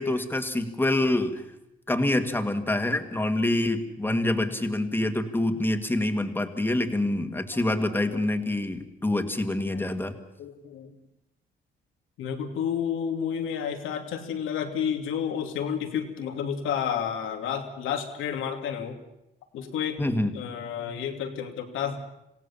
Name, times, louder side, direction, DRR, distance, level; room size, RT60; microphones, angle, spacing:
voice 1, 0.0-1.4 1.9-10.1 20.0-20.3, left 1 dB, 10° left, 7 dB, 2.3 m, -26 dB
voice 2, 10.4-10.9 12.2-19.0 19.5-20.0 20.3-22.0, left 8 dB, 85° left, 5 dB, 2.8 m, -31 dB
27.0 x 17.0 x 7.3 m, 0.86 s
cardioid pair, 90°, 20 cm